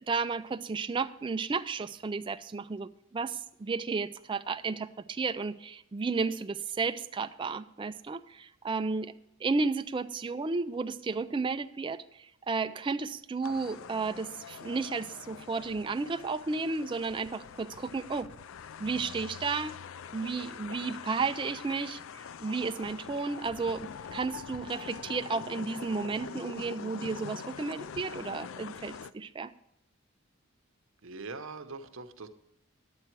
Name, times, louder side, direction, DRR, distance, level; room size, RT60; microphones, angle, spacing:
voice 1, 0.0-9.1 9.4-18.3 18.8-19.8 20.1-29.5, right 4 dB, 20° right, 10 dB, 0.3 m, -33 dB
sound 1, 13.4-29.1, left 7 dB, 65° left, 0.4 m, -44 dB
voice 2, 31.0-32.3, right 3 dB, 60° right, 8 dB, 0.8 m, -42 dB
11.0 x 8.8 x 4.6 m, 0.84 s
head